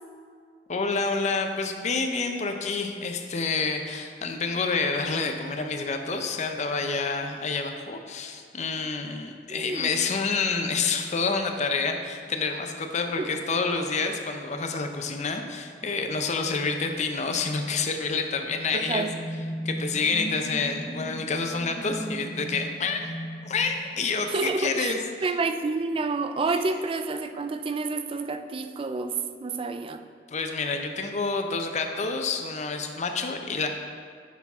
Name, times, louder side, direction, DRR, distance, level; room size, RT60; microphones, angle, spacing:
voice 1, 0.7-19.1 19.6-23.0 23.4-25.3 26.5-26.6 30.3-33.7, left 4 dB, 40° left, 5 dB, 0.6 m, -28 dB
voice 2, 9.5-9.9 13.2-13.3 18.7-19.1 24.3-24.9 25.2-30.0, right 3 dB, 30° right, 9 dB, 0.3 m, -29 dB
sound 1, 18.2-24.6, equal, 25° left, 0.9 m, -37 dB
8.2 x 5.7 x 3.5 m, 2.1 s
head